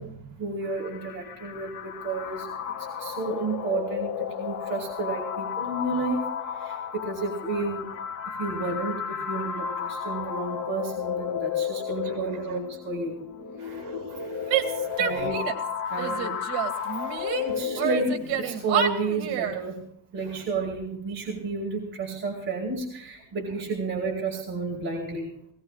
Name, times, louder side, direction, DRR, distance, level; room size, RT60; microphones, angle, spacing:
voice 1, 0.0-2.5 2.8-7.9 8.3-13.2 13.6-13.8 15.0-15.4 15.9-16.4 17.3-19.9 20.1-25.3, right 3 dB, 30° right, -5 dB, 4.7 m, -31 dB
sound 1, 0.6-18.6, left 8 dB, 45° left, 2.2 m, -33 dB
voice 2, 11.9-12.6 13.6-15.3 16.0-16.2 16.7-17.6 20.2-20.4, right 7 dB, 55° right, 5 dB, 6.2 m, -40 dB
Female speech woman speaking / Yell, 14.5-15.7 16.0-17.4 17.8-19.6, right 9 dB, 75° right, 2.5 m, -28 dB
21.0 x 19.0 x 2.5 m, 0.68 s
cardioid pair, 145°, 39 cm